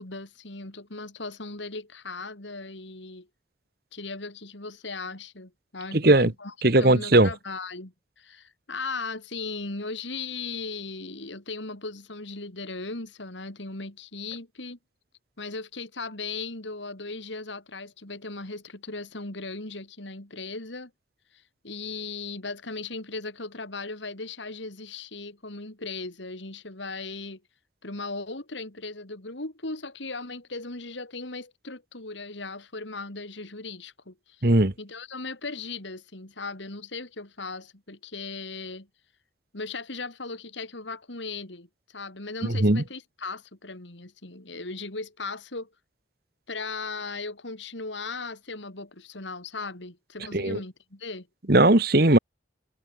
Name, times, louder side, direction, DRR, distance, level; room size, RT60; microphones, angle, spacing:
voice 1, 0.0-3.3 3.9-6.5 6.8-14.8 15.4-20.9 21.3-27.4 27.8-34.5 34.8-38.9 39.5-45.7 46.5-51.3, left 3 dB, 75° left, 3.1 m, -37 dB
voice 2, 5.9-6.3 6.6-7.3 34.4-34.7 42.4-42.8 50.3-50.6 51.5-52.2, right 2 dB, 50° right, 1.6 m, -18 dB
head